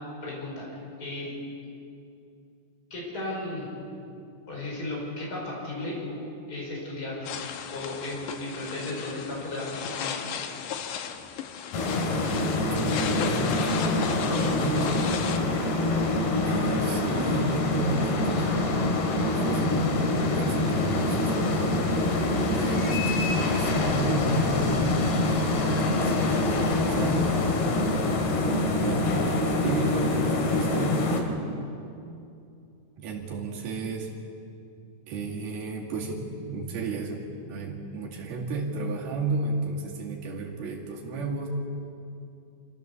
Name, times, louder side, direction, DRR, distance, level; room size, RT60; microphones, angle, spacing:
voice 1, 0.2-1.3 2.9-3.7 4.5-6.2 6.5-7.3 7.7-10.4, left 2 dB, 25° left, -4 dB, 5.6 m, -35 dB
sound 1, 7.2-15.4, left 8 dB, 70° left, 2.1 m, -36 dB
sound 2, 11.7-31.2, left 2 dB, 90° left, 3.9 m, -25 dB
voice 2, 12.7-13.7 14.2-15.2 16.4-18.6 19.3-21.8 22.4-25.1 25.5-27.6 28.5-31.0 33.0-34.1 35.1-41.5, right 3 dB, 75° right, -1 dB, 4.2 m, -33 dB
26.5 x 15.0 x 6.9 m, 2.6 s
omnidirectional pair, 4.4 m